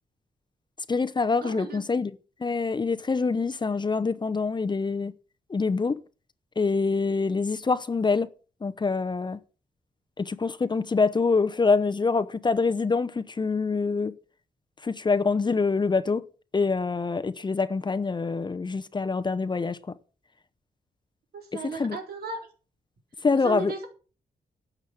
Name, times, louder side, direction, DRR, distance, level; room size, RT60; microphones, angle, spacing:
voice 1, 0.9-2.1 2.4-5.1 5.5-6.0 6.6-8.3 8.6-9.4 10.2-14.1 14.8-16.2 16.5-19.8 21.7-22.0 23.2-23.7, left 4 dB, 30° left, 0.8 m, -25 dB
voice 2, 1.4-1.8 21.3-22.5 23.3-23.9, right 4 dB, 75° right, 4.3 m, -35 dB
12.5 x 8.2 x 6.1 m
wide cardioid pair, 125°, 16 cm